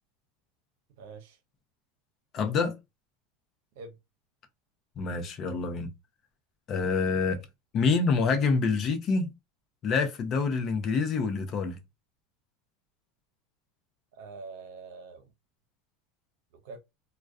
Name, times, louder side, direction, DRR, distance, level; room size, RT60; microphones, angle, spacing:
voice 1, 1.0-1.4 3.8-4.0 14.1-15.3 16.6-16.8, right 4 dB, 70° right, 0.7 m, -44 dB
voice 2, 2.3-2.8 5.0-5.9 6.7-7.4 7.7-9.3 9.8-11.8, left 4 dB, 40° left, 0.6 m, -26 dB
2.3 x 2.2 x 2.4 m
hypercardioid pair, 105°, 0 cm